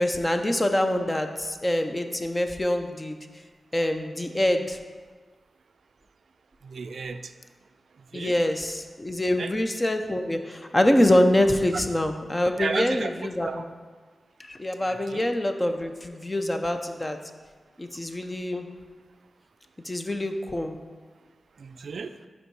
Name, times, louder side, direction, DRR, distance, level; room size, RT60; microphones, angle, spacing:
voice 1, 0.0-3.2 3.7-4.8 8.1-13.6 14.5-17.2 17.8-18.7 19.8-20.8, left 1 dB, 15° left, 6 dB, 0.4 m, -25 dB
voice 2, 6.6-7.3 8.1-8.4 9.4-9.5 12.5-13.1 13.4-13.7 15.1-15.3 21.6-22.1, right 5 dB, 65° right, 9 dB, 0.3 m, -33 dB
6.5 x 5.4 x 4.6 m, 1.5 s
wide cardioid pair, 170°, 0 cm